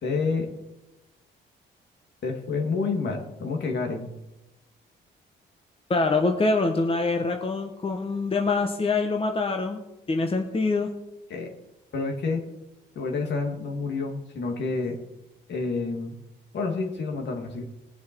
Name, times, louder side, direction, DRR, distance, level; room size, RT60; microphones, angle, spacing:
voice 1, 0.0-0.5 2.2-4.1 11.3-11.5 11.9-12.4 12.9-15.0 15.5-16.2 16.5-17.6, left 4 dB, 60° left, 3 dB, 2.6 m, -28 dB
voice 2, 5.9-9.8 10.1-10.9, left 3 dB, 30° left, 4 dB, 1.3 m, -24 dB
20.5 x 7.2 x 4.7 m, 0.96 s
cardioid pair, 90°, 20 cm